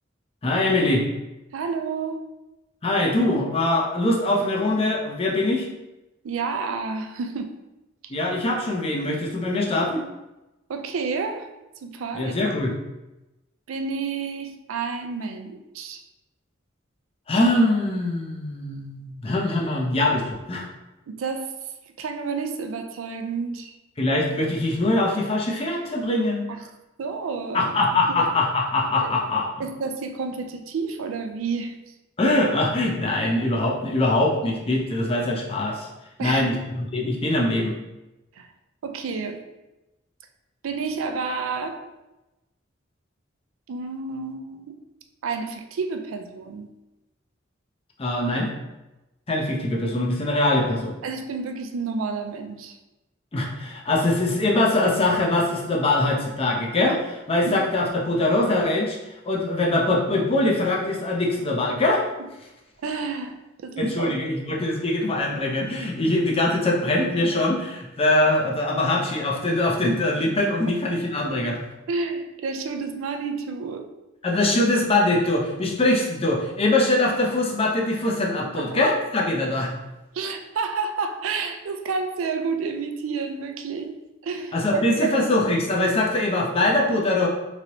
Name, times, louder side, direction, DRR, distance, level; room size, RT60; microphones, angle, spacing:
voice 1, 0.4-1.0 2.8-5.7 8.1-10.0 12.1-12.8 17.3-20.7 24.0-26.5 27.5-29.5 32.2-35.9 36.2-37.7 48.0-48.5 49.3-51.0 53.3-59.0 59.2-62.0 63.8-71.6 74.2-79.7 84.5-87.3, left 2 dB, 30° left, -1 dB, 0.5 m, -23 dB
voice 2, 1.5-2.2 6.2-7.5 10.7-11.5 11.8-12.3 13.7-16.0 21.1-21.5 22.0-23.8 26.5-26.6 27.0-27.8 28.1-28.3 29.0-29.1 29.6-31.9 36.2-36.5 38.4-38.5 38.8-39.4 40.6-41.8 43.7-44.7 45.2-46.7 51.0-52.8 57.5-57.6 62.2-62.3 62.8-64.1 71.9-73.9 78.4-78.8 80.1-85.2, right 4 dB, 85° right, 6 dB, 0.4 m, -30 dB
3.1 x 2.6 x 2.9 m, 1.0 s
head